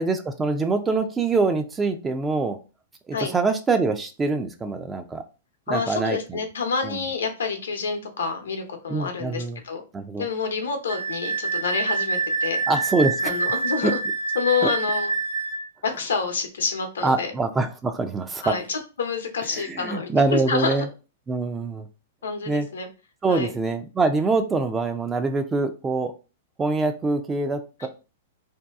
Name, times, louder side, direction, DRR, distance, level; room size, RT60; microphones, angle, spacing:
voice 1, 0.0-2.6 3.1-5.2 5.7-6.4 6.8-7.0 8.9-9.6 9.9-10.2 12.7-13.3 13.8-13.9 14.6-14.7 17.0-18.5 19.6-20.9 21.3-21.9 22.5-22.7 23.2-26.1 26.6-27.9, right 3 dB, 15° right, 7 dB, 0.5 m, -24 dB
voice 2, 5.7-9.8 10.2-12.6 13.2-14.0 14.3-15.1 15.8-17.3 18.4-20.8 22.2-22.9 23.3-23.5 27.8-27.9, left 5 dB, 85° left, 4 dB, 0.8 m, -28 dB
Wind instrument woodwind instrument, 10.9-15.6, right 4 dB, 45° right, 1.3 m, -26 dB
2.7 x 2.3 x 3.4 m, 0.32 s
hypercardioid pair, 115°, 0 cm